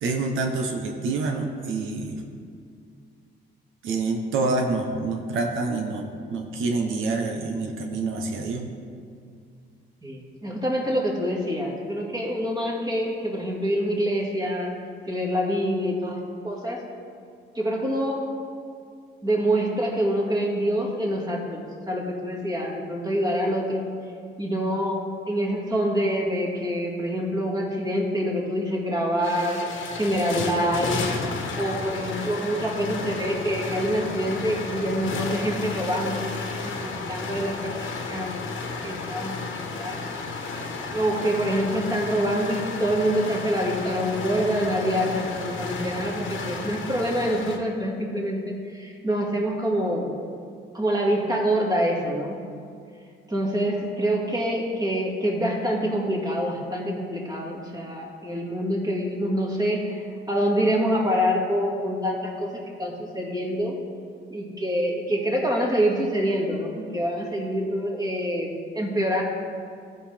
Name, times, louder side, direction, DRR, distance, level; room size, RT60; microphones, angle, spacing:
voice 1, 0.0-2.2 3.8-8.7, right 3 dB, 85° right, 2 dB, 0.9 m, -27 dB
voice 2, 10.0-14.7 15.1-16.8 17.6-18.2 19.2-23.9 24.4-31.0 31.6-36.2 36.4-38.3 38.6-40.0 40.9-50.1 50.7-52.4 53.3-60.0 60.3-63.8 64.3-69.2, equal, 20° right, -1 dB, 1.9 m, -26 dB
sound 1, 28.7-28.8 29.0-47.6, left 3 dB, 80° left, 1.3 m, -33 dB
14.5 x 5.5 x 3.5 m, 2.3 s
cardioid pair, 90°, 20 cm